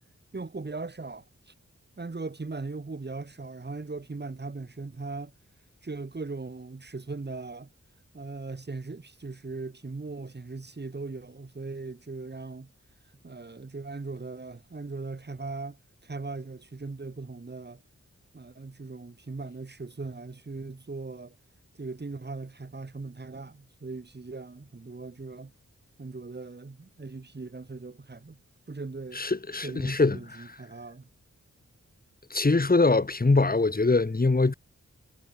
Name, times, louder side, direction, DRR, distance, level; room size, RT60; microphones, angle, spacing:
voice 1, 0.3-1.5 2.0-5.3 5.8-7.7 8.1-12.7 13.2-17.8 18.3-21.4 21.8-25.5 26.0-28.4 28.7-29.2 29.6-31.1, right 3 dB, 35° right, 2.1 m, -39 dB
voice 2, 29.2-30.2 32.3-34.5, left 3 dB, 30° left, 1.9 m, -23 dB
wide cardioid pair, 90°, 29 cm